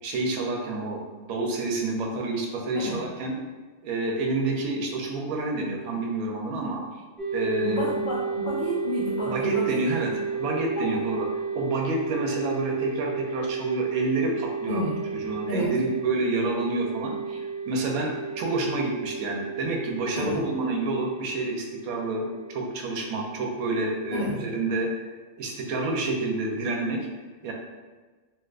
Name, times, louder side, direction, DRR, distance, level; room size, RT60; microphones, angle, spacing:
voice 1, 0.0-3.3 3.8-6.8 7.3-7.8 9.2-14.8 15.1-24.9 25.4-27.1 27.4-27.5, right 2 dB, 80° right, 0 dB, 1.0 m, -28 dB
sound 1, 7.2-24.5, right 5 dB, 35° right, 0.8 m, -33 dB
voice 2, 7.6-9.8 10.8-10.9 14.7-15.0 15.5-15.7 20.2-20.4 24.1-24.4, left 1 dB, 90° left, -6 dB, 0.4 m, -30 dB
3.4 x 2.5 x 2.4 m, 1.3 s
omnidirectional pair, 1.5 m